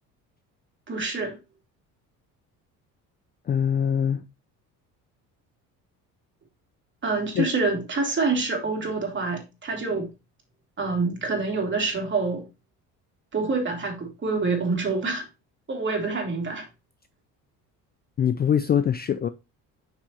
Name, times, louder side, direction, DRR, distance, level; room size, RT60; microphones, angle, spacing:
voice 1, 0.9-1.4 7.0-10.1 10.8-12.5 13.3-15.3 15.7-16.7, right 3 dB, 30° right, 2.7 m, -26 dB
voice 2, 3.5-4.2 7.3-7.5 18.2-19.3, left 8 dB, 30° left, 0.4 m, -23 dB
6.6 x 6.0 x 3.0 m
cardioid pair, 105°, 36 cm